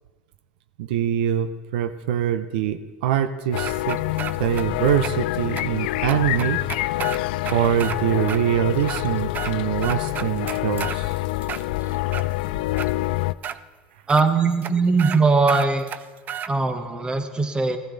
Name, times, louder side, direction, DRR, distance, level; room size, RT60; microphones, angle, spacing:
voice 1, 0.8-4.0 4.4-6.6 7.5-11.1, right 10 dB, 80° right, 11 dB, 0.6 m, -24 dB
sound 1, 3.5-13.3, left 17 dB, 80° left, 0.3 m, -26 dB
sound 2, 3.6-4.6 5.0-5.1 5.6-5.7 6.1-8.0 8.3-8.4 8.8-9.5 9.8-11.0 11.4-12.3 12.8-12.9 13.4-13.6 14.1-14.2 14.6-14.7 15.0-15.2 15.5-16.5, right 9 dB, 35° right, 0.5 m, -32 dB
voice 2, 14.1-15.9 16.5-17.8, right 4 dB, 20° right, 8 dB, 1.2 m, -20 dB
15.0 x 14.5 x 3.9 m, 1.3 s
supercardioid pair, 115°, 5 cm